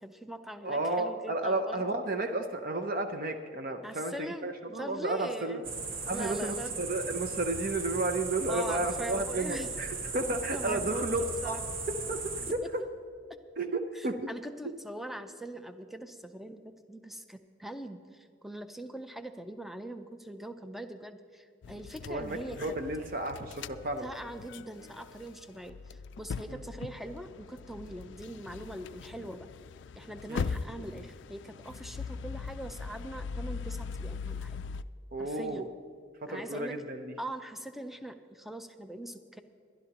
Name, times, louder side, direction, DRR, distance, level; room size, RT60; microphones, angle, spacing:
voice 1, 0.0-2.0 3.8-5.6 6.1-6.8 8.5-9.7 10.5-11.6 13.9-22.6 24.0-29.5 30.0-34.6 35.2-35.7 36.3-36.7 37.2-39.4, right 1 dB, ahead, 8 dB, 0.5 m, -42 dB
voice 2, 0.6-5.6 6.1-11.6 12.1-12.2 13.6-14.3 22.0-24.1 26.5-26.6 30.3-30.5 35.1-35.7 36.2-37.1, right 2 dB, 45° right, 6 dB, 0.6 m, -32 dB
sound 1, 5.6-12.5, right 4 dB, 75° right, 1.4 m, -37 dB
sound 2, 21.6-34.8, left 5 dB, 60° left, 0.3 m, -41 dB
22.0 x 11.5 x 2.9 m, 2.4 s
head